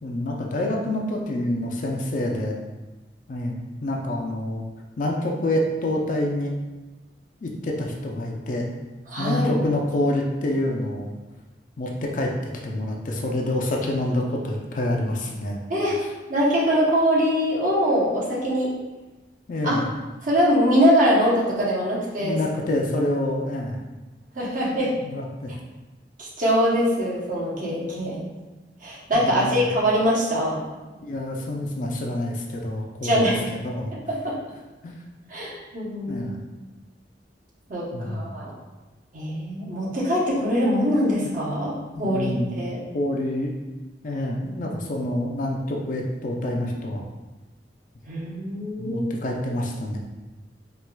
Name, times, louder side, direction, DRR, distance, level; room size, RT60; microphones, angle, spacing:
voice 1, 0.0-2.6 3.3-4.6 5.0-6.5 7.4-8.7 9.2-11.1 11.8-12.3 12.6-15.6 19.5-19.9 22.2-23.8 24.8-25.5 29.1-29.6 30.9-33.3 33.6-33.9 34.8-35.0 36.1-36.4 37.9-38.3 41.9-43.5 44.0-47.0 48.8-50.0, left 1 dB, 50° left, 0 dB, 0.4 m, -27 dB
voice 2, 9.1-9.6 15.7-16.0 16.3-18.7 19.6-19.7 20.2-22.4 24.3-24.9 26.2-28.2 28.8-30.6 33.0-33.4 34.1-34.4 35.3-36.3 36.6-36.7 37.7-38.5 39.1-41.7 42.0-42.8 48.1-49.1, equal, 50° right, -6 dB, 0.9 m, -23 dB
4.3 x 2.4 x 2.2 m, 1.1 s
head